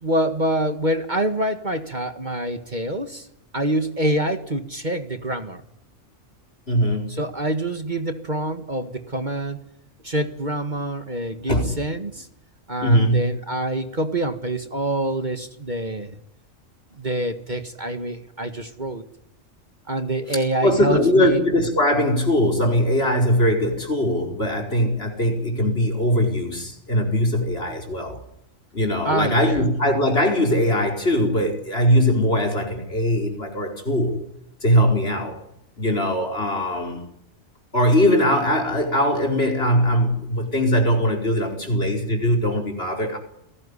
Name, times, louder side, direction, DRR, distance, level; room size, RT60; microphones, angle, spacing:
voice 1, 0.0-3.3 3.5-5.6 7.1-9.6 10.0-12.3 12.7-16.2 17.0-19.0 19.9-21.4 29.0-29.6, right 1 dB, 35° right, 8 dB, 1.9 m, -26 dB
voice 2, 6.7-7.2 11.5-11.7 12.8-13.2 20.3-28.2 28.7-34.2 34.6-35.4 35.8-37.1 37.7-43.2, equal, 50° left, 3 dB, 5.0 m, -21 dB
29.5 x 18.5 x 9.9 m, 0.79 s
omnidirectional pair, 1.3 m